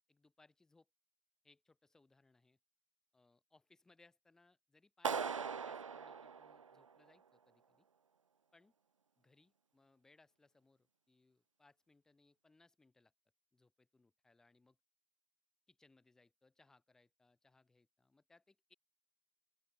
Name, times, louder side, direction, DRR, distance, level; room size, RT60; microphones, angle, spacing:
voice 1, 0.1-0.9 1.4-2.6 3.1-7.8 8.5-8.7 9.2-13.1 13.5-14.8 15.7-18.7, left 3 dB, 5° left, 1.3 m, -70 dB
Clapping, 5.0-7.1, right 6 dB, 85° right, 0.5 m, -40 dB
open air
figure-of-eight pair, 145°, 16 cm